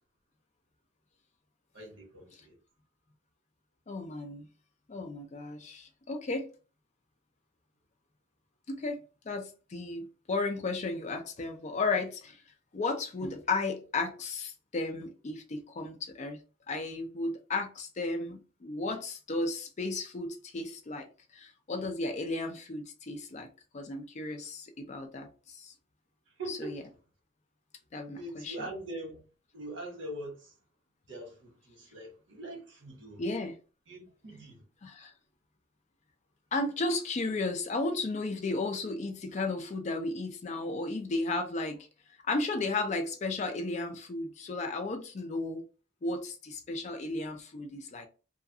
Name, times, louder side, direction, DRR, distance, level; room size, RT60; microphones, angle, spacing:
voice 1, 1.7-2.6 24.4-24.5 26.3-26.8 28.0-29.3 29.5-30.6 31.1-33.2 33.9-34.6, right 1 dB, 75° right, 1.1 m, -43 dB
voice 2, 3.9-4.5 4.9-6.5 8.7-9.0 9.3-12.4 12.7-16.4 16.7-23.5 23.7-25.7 26.5-26.8 27.9-28.6 33.2-33.5 34.8-35.1 36.5-41.9 42.3-45.7 46.0-48.1, left 3 dB, 40° left, 0.4 m, -34 dB
2.4 x 2.3 x 2.6 m
head